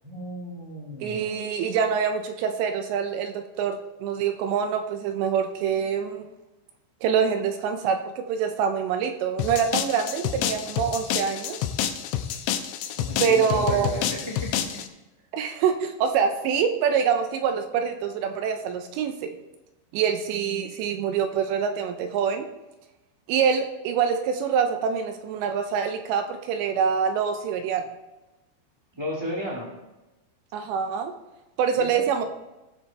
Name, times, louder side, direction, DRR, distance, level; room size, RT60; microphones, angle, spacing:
voice 1, 0.0-1.4 13.0-14.5 28.9-29.7 31.8-32.0, equal, 30° right, -4 dB, 0.4 m, -34 dB
voice 2, 1.0-6.3 7.0-8.0 8.3-11.6 13.2-13.9 15.3-19.3 19.9-22.5 23.3-27.9 30.5-31.1 31.6-32.2, right 7 dB, 80° right, 6 dB, 2.9 m, -25 dB
sound 1, 9.4-14.9, left 10 dB, 80° left, 2.8 m, -28 dB
18.5 x 7.2 x 4.2 m, 1.0 s
omnidirectional pair, 5.4 m